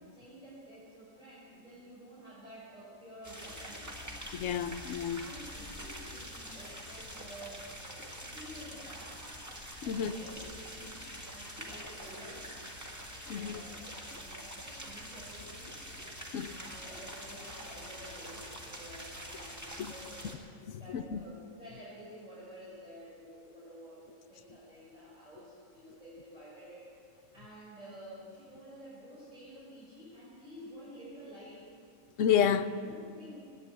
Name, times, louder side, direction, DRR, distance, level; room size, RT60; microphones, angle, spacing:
voice 1, 0.1-4.0 5.1-9.3 9.8-12.5 13.3-15.8 16.5-20.4 20.8-26.9 27.3-31.6 32.8-33.5, equal, 25° right, 5.5 m, -50 dB
sound 1, 3.2-20.3, equal, 10° right, 1.8 m, -45 dB
voice 2, 4.3-5.3 9.8-10.1 13.3-13.6 16.3-16.6 19.8-19.9 20.7-21.3 32.2-32.7, left 8 dB, 65° left, 0.9 m, -30 dB
16.0 x 9.8 x 9.0 m
omnidirectional pair, 1.5 m